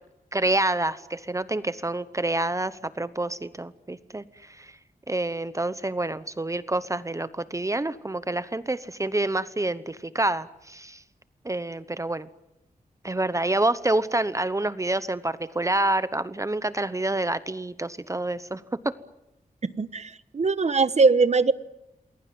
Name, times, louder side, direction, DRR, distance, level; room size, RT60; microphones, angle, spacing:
voice 1, 0.3-4.7 5.1-11.0 11.4-12.3 13.0-18.9, right 2 dB, 20° right, 14 dB, 0.9 m, -27 dB
voice 2, 19.6-21.5, right 4 dB, 50° right, 15 dB, 1.2 m, -21 dB
28.5 x 21.5 x 9.4 m, 0.90 s
wide cardioid pair, 140°, 15 cm